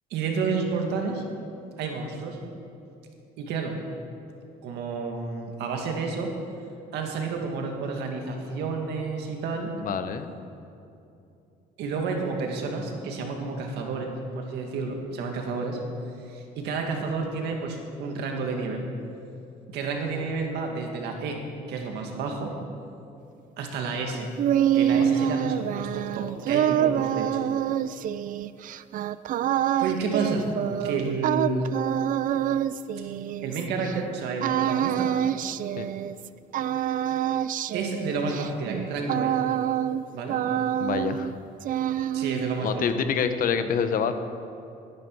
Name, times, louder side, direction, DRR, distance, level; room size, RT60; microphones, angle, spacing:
voice 1, 0.1-1.2 1.8-2.4 3.4-3.8 4.6-6.3 6.9-9.7 11.8-15.8 16.3-18.9 19.7-21.4 21.7-22.5 23.6-24.3 24.7-27.3 29.8-30.5 30.8-31.7 33.4-35.1 37.7-39.3 40.1-40.4 42.1-42.9, right 4 dB, 85° right, 2 dB, 2.1 m, -30 dB
voice 2, 9.8-10.3 24.9-25.1 35.8-35.9 40.8-41.3 42.6-44.1, left 7 dB, 55° left, 9 dB, 1.0 m, -27 dB
sound 1, 24.1-33.9 34.4-36.3 36.5-40.0 40.3-41.3 41.6-42.6, right 10 dB, 55° right, 0.4 m, -26 dB
17.5 x 11.0 x 4.8 m, 2.7 s
cardioid pair, 110°, 17 cm